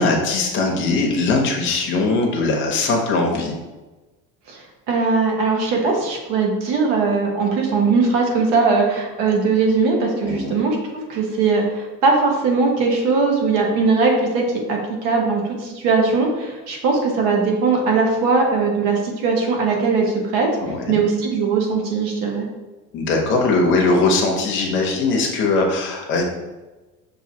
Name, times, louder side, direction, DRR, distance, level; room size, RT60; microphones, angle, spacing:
voice 1, 0.0-3.6 10.2-10.6 20.6-21.0 22.9-26.2, left 3 dB, 35° left, 0 dB, 0.7 m, -20 dB
voice 2, 4.9-10.8 11.1-20.0 20.3-20.5 20.9-22.5, right 4 dB, 70° right, 0 dB, 1.1 m, -19 dB
6.0 x 2.6 x 2.8 m, 1.2 s
cardioid pair, 175°, 33 cm